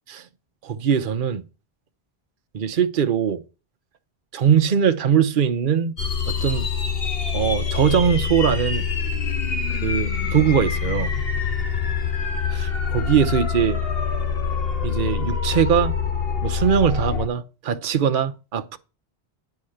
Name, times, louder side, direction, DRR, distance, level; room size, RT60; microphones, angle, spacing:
voice 1, 0.6-1.4 2.5-3.4 4.3-5.9 6.3-6.7 7.3-8.9 9.7-11.1 12.5-13.8 14.8-15.9 16.4-18.8, right 8 dB, 55° right, 1.0 m, -21 dB
sound 1, 6.0-17.3, left 6 dB, 65° left, 1.8 m, -25 dB
10.0 x 4.8 x 7.8 m
omnidirectional pair, 1.1 m